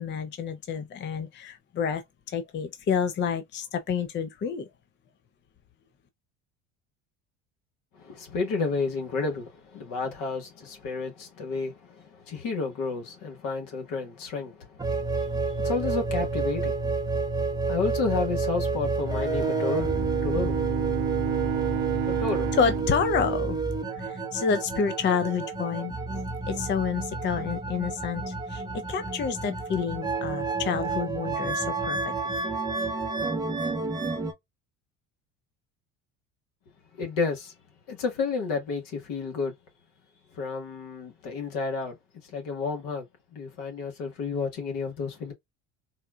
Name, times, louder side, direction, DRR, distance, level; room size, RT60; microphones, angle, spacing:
voice 1, 0.0-4.7 22.5-23.6 23.9-25.9 26.5-28.6 28.9-32.1, left 6 dB, 30° left, 0.6 m, -29 dB
voice 2, 7.9-20.6 22.1-22.5 36.9-37.5 37.9-39.5 40.3-42.0 42.3-43.0 43.3-45.3, left 4 dB, 65° left, 1.5 m, -31 dB
sound 1, 14.8-34.3, right 3 dB, 10° right, 0.7 m, -30 dB
Bowed string instrument, 19.0-24.5, right 18 dB, 70° right, 0.5 m, -33 dB
4.1 x 2.2 x 2.3 m
hypercardioid pair, 80°, 37 cm